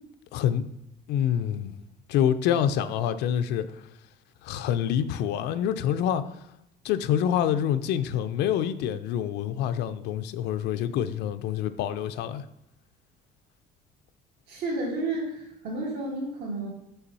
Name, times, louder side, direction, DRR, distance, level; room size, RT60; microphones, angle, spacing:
voice 1, 0.3-0.6 1.1-1.8 2.1-3.8 4.4-6.2 6.8-12.4, left 9 dB, 85° left, 0.5 m, -26 dB
voice 2, 14.5-16.7, right 2 dB, 75° right, 2.0 m, -31 dB
6.1 x 5.7 x 4.1 m
cardioid pair, 175°, 17 cm